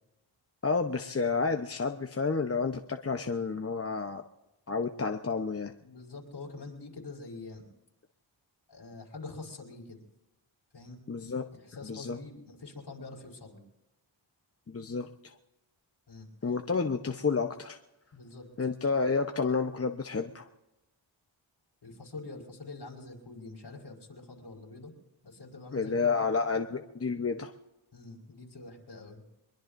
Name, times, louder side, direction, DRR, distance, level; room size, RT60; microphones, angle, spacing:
voice 1, 0.6-4.2 4.7-5.7 11.1-11.4 11.8-12.2 14.7-15.4 16.4-17.8 18.6-20.5 25.7-27.5, left 4 dB, 30° left, 5 dB, 0.9 m, -30 dB
voice 2, 5.8-7.6 8.7-10.0 10.7-11.0 11.7-13.6 16.1-16.3 18.1-18.4 21.8-24.9 25.2-26.1 27.9-29.2, left 3 dB, 55° left, 0 dB, 4.9 m, -45 dB
24.0 x 22.0 x 2.7 m, 0.96 s
wide cardioid pair, 75°, 47 cm